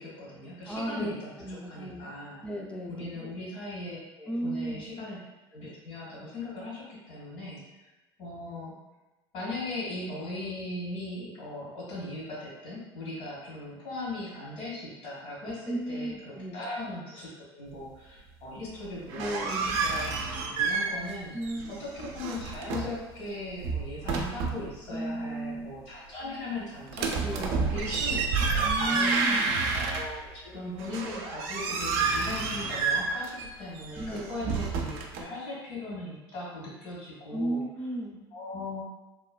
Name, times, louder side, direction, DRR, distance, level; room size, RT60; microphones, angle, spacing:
voice 1, 0.0-2.4 2.9-5.2 5.5-7.6 8.2-8.7 9.3-20.1 20.5-21.3 21.7-27.1 27.7-28.2 28.5-29.2 29.7-37.6 38.3-38.9, left 2 dB, 60° left, -6 dB, 1.4 m, -39 dB
voice 2, 0.6-2.1 2.4-3.1 4.3-4.9 15.7-16.6 19.2-19.8 21.3-21.8 24.9-25.7 27.2-27.7 28.6-29.6 34.0-34.3 37.3-38.2, right 1 dB, 10° left, -1 dB, 0.5 m, -34 dB
sound 1, 18.9-21.2 21.4-23.0 23.5-24.7 26.9-30.3 30.8-35.2, right 4 dB, 60° right, 0.4 m, -29 dB
3.1 x 2.1 x 2.2 m, 1.1 s
hypercardioid pair, 75°, 13 cm